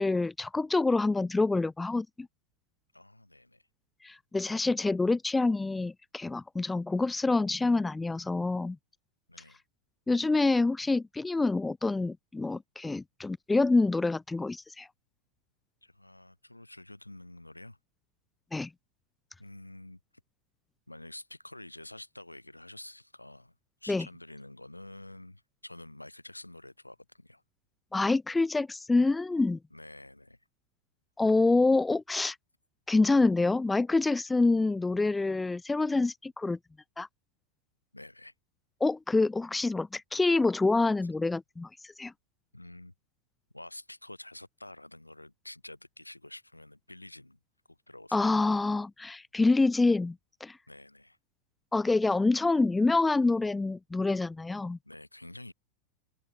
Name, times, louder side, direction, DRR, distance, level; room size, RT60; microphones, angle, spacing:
voice 1, 0.0-2.3 4.0-8.8 10.1-14.9 18.5-18.7 23.9-24.1 27.9-29.6 31.2-32.4 32.9-36.6 37.0-37.1 38.8-42.1 48.1-50.2 50.4-50.6 51.7-54.8, left 3 dB, 10° left, 0.4 m, -26 dB
voice 2, 2.9-3.7 9.3-9.6 15.8-17.8 19.4-20.0 20.9-23.5 23.8-27.4 29.7-30.4 37.9-38.3 42.5-42.9 43.5-47.4 47.7-48.3 50.7-51.2 54.8-55.5, left 1 dB, 85° left, 3.7 m, -48 dB
open air
figure-of-eight pair, 90°, 0 cm